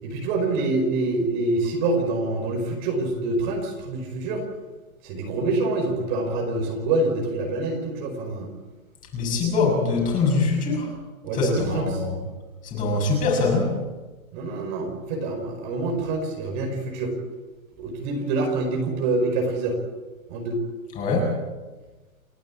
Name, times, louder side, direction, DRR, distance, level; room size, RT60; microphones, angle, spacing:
voice 1, 0.0-4.4 5.0-8.5 11.2-12.0 14.3-17.1 17.8-19.7 20.3-20.6, right 2 dB, 35° right, 3 dB, 5.1 m, -26 dB
voice 2, 9.1-10.9 11.3-12.1 12.6-13.7 21.0-21.3, left 3 dB, 20° left, 0 dB, 6.7 m, -23 dB
29.5 x 12.0 x 8.9 m, 1.2 s
hypercardioid pair, 160°, 42 cm